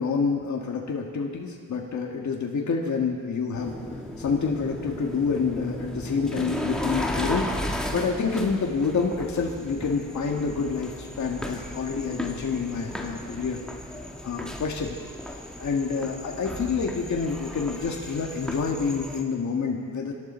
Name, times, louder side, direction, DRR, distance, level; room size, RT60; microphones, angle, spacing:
voice 1, 0.0-3.8 4.2-13.6 14.2-15.0 15.6-20.1, left 5 dB, 55° left, 0 dB, 1.8 m, -28 dB
sound 1, 3.6-19.2, left 1 dB, ahead, 1.7 m, -35 dB
24.5 x 12.5 x 4.4 m, 2.2 s
cardioid pair, 105°, 35 cm